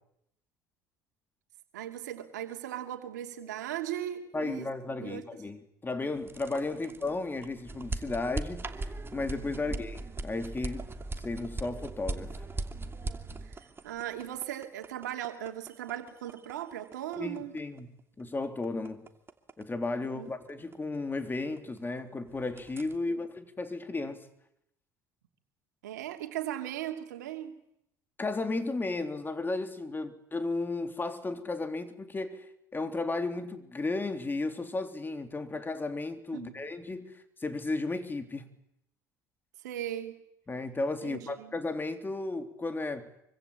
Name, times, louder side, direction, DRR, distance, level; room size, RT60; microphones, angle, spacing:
voice 1, 1.7-4.7 5.0-5.2 9.5-9.8 13.4-17.6 20.0-20.3 23.1-23.2 25.8-27.6 36.3-36.5 39.6-40.1 41.0-41.5, right 11 dB, 80° right, 2.7 m, -38 dB
voice 2, 4.3-10.9 11.2-12.3 17.2-17.9 18.2-19.1 19.6-24.3 28.2-38.5 40.5-43.1, left 3 dB, 20° left, 3.5 m, -34 dB
sound 1, 6.2-22.0 22.3-23.0, right 2 dB, 25° right, 2.8 m, -39 dB
25.5 x 24.5 x 8.8 m
hypercardioid pair, 65°, 9 cm